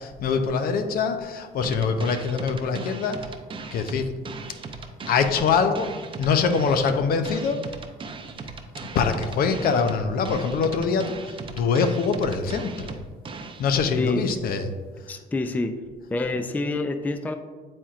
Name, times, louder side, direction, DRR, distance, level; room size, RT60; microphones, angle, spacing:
voice 1, 0.0-3.2 3.7-4.1 5.1-5.9 6.2-7.6 8.9-11.1 11.5-13.0 13.6-14.7, left 5 dB, 60° left, 8 dB, 0.6 m, -23 dB
sound 1, 1.6-13.6, right 4 dB, 30° right, 0.6 m, -38 dB
voice 2, 14.0-14.3 15.1-15.7 16.1-17.3, left 2 dB, 10° left, 7 dB, 0.3 m, -27 dB
8.9 x 4.3 x 2.4 m, 1.5 s
cardioid pair, 110°, 17 cm